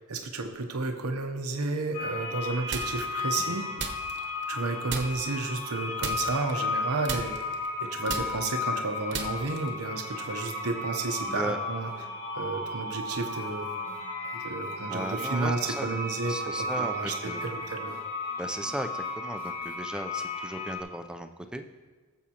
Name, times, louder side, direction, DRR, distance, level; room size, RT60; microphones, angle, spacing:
voice 1, 0.1-3.7 4.5-7.4 7.8-11.9 12.4-13.7 14.3-18.0, right 3 dB, 90° right, 5 dB, 0.9 m, -32 dB
sound 1, 1.9-20.8, left 2 dB, 85° left, 1.7 m, -34 dB
sound 2, 2.7-3.2 3.8-4.6 4.9-5.4 6.0-6.8 7.0-9.8, right 5 dB, 50° right, 1.0 m, -36 dB
voice 2, 11.3-11.6 14.9-15.9 16.3-17.6 18.4-21.6, right 1 dB, 5° right, 6 dB, 0.5 m, -36 dB
sound 3, 11.9-12.4 12.6-19.7, left 1 dB, 20° left, 1.5 m, -55 dB
18.0 x 7.3 x 2.9 m, 1.4 s
head